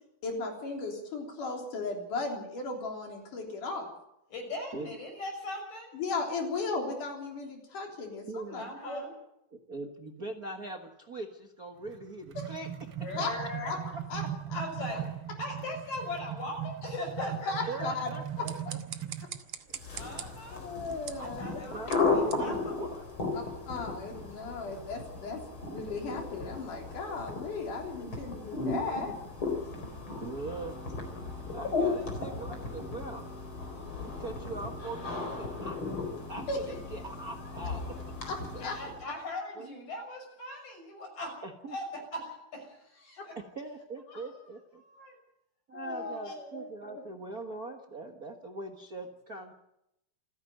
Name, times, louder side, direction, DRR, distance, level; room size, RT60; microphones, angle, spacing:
voice 1, 0.2-3.9 5.9-9.0 12.4-12.5 13.1-13.3 13.6-13.8 14.1-14.2 14.5-14.6 17.5-18.1 18.4-18.5 19.9-20.0 20.5-21.6 23.3-29.1 36.5-36.6 38.2-38.7 43.2-43.3 45.7-47.0, left 3 dB, 80° left, 1 dB, 5.1 m, -36 dB
voice 2, 4.3-5.9 8.5-9.1 13.0-14.0 14.5-15.0 15.4-17.8 19.9-20.6 21.2-22.9 31.9-32.3 38.5-41.4 41.7-43.4 44.2-44.3 44.8-45.2 45.8-46.3, left 1 dB, 65° left, 3 dB, 7.4 m, -40 dB
voice 3, 8.3-8.7 9.5-12.7 13.2-13.3 17.7-18.8 19.0-19.1 20.0-20.2 20.9-21.0 21.7-23.0 30.2-30.8 31.5-33.3 34.0-35.8 36.3-37.8 38.5-38.6 39.5-39.7 41.4-41.8 43.3-44.8 45.7-49.5, right 2 dB, 40° right, 2 dB, 1.4 m, -41 dB
sound 1, 11.8-19.4, right 11 dB, 75° right, 1.0 m, -39 dB
sound 2, 18.2-23.5, right 9 dB, 60° right, 2.0 m, -46 dB
sound 3, 19.7-39.1, left 3 dB, 40° left, 5.1 m, -35 dB
28.0 x 10.5 x 9.2 m, 0.83 s
omnidirectional pair, 3.6 m